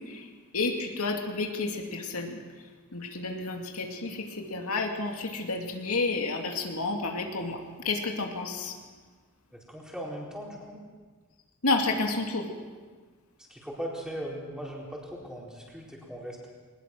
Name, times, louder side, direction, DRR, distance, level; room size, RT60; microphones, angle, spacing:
voice 1, 0.5-2.4 2.9-8.7 11.6-12.5, left 3 dB, 85° left, 2 dB, 2.4 m, -30 dB
voice 2, 9.5-10.8 13.5-16.5, equal, 5° right, -3 dB, 4.3 m, -39 dB
21.0 x 20.0 x 6.2 m, 1.4 s
head